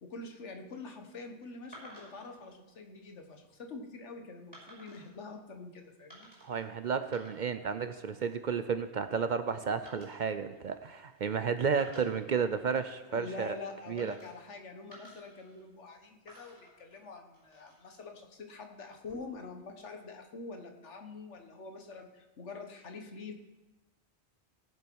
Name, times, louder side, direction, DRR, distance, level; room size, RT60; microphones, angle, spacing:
voice 1, 0.0-6.3 13.1-23.3, left 3 dB, 85° left, 5 dB, 1.6 m, -46 dB
sound 1, 1.7-2.4 3.1-3.4 4.5-5.1 6.1-6.6 7.0-7.7 8.0-8.4 9.9-11.3 11.7-12.9 14.0-14.5 14.9-15.9 16.3-17.9 18.9-19.5, right 1 dB, 15° left, 5.5 m, -56 dB
voice 2, 6.4-13.5 13.9-14.1, right 6 dB, 55° right, 10 dB, 0.6 m, -32 dB
18.0 x 7.6 x 4.6 m, 1.1 s
omnidirectional pair, 1.2 m